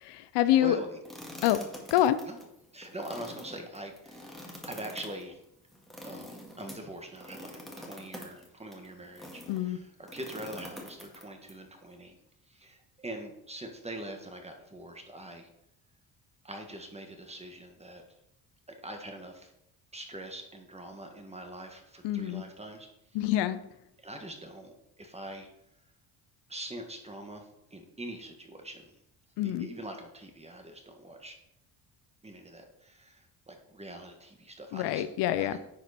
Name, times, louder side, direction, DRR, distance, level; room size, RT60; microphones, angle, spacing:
voice 1, 0.0-0.8 1.4-1.6 1.9-2.2 9.5-9.8 22.0-22.4 23.1-23.6 29.4-29.7 34.7-35.5, left 13 dB, 75° left, 13 dB, 0.6 m, -26 dB
voice 2, 0.5-1.0 1.4-1.6 2.3-2.4 2.7-5.4 6.0-12.2 12.5-15.5 16.4-18.0 18.8-19.5 19.9-22.9 24.0-25.5 26.5-28.9 29.4-31.3 32.2-35.0 35.4-35.6, right 1 dB, 15° right, 4 dB, 1.7 m, -43 dB
sound 1, 1.0-9.6 10.0-11.5, left 1 dB, ahead, 2.0 m, -46 dB
10.5 x 4.4 x 4.3 m, 0.82 s
cardioid pair, 85°, 41 cm